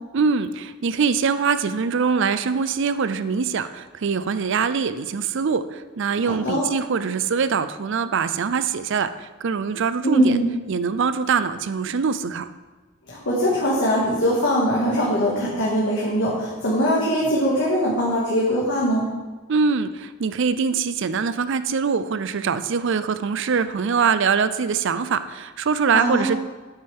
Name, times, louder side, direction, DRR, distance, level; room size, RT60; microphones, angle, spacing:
voice 1, 0.1-9.1 9.4-10.4 10.7-12.5 19.5-26.4, right 5 dB, 65° right, 13 dB, 0.5 m, -23 dB
voice 2, 6.2-6.7 10.0-10.5 13.1-19.1 25.9-26.4, equal, 65° left, -6 dB, 1.9 m, -21 dB
9.6 x 8.9 x 3.5 m, 1.3 s
head